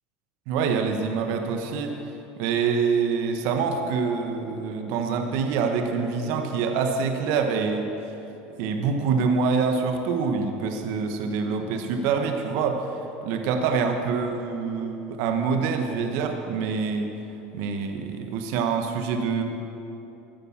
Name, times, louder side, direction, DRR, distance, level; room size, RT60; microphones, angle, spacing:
voice 1, 0.5-2.0 2.4-8.1 8.6-12.9 13.2-17.1 17.5-19.4, right 5 dB, 70° right, 5 dB, 1.2 m, -25 dB
13.0 x 9.1 x 7.3 m, 3.0 s
supercardioid pair, 105°, 5 cm